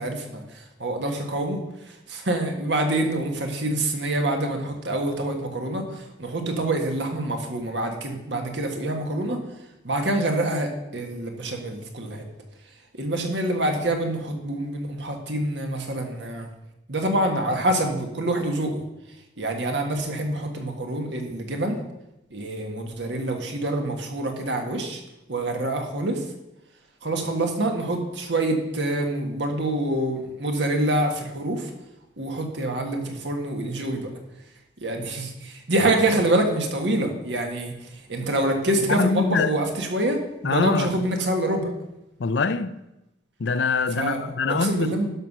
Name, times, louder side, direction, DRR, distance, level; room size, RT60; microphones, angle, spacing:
voice 1, 0.0-9.4 9.8-12.2 13.0-16.5 16.9-18.8 19.4-21.8 22.3-25.0 25.3-26.2 27.0-31.7 32.2-34.1 34.8-41.7 44.0-45.1, right 1 dB, 70° right, 1.7 m, -26 dB
voice 2, 38.9-39.5 40.4-41.0 42.2-42.8 43.4-44.9, left 4 dB, 70° left, 0.5 m, -24 dB
12.0 x 5.7 x 6.1 m
head